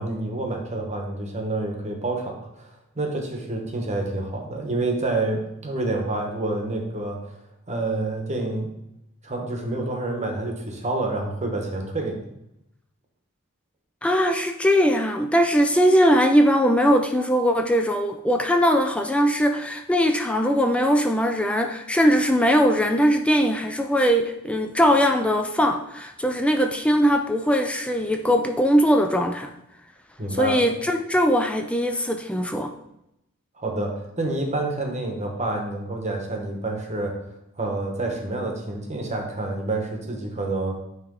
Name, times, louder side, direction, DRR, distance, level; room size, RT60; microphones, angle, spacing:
voice 1, 0.0-7.2 7.7-8.7 9.2-12.2 30.2-30.5 33.6-37.2 37.6-40.8, right 2 dB, 35° right, 2 dB, 1.1 m, -28 dB
voice 2, 14.0-29.5 30.3-32.7, equal, 5° left, 5 dB, 0.3 m, -20 dB
8.9 x 3.1 x 3.7 m, 0.83 s
head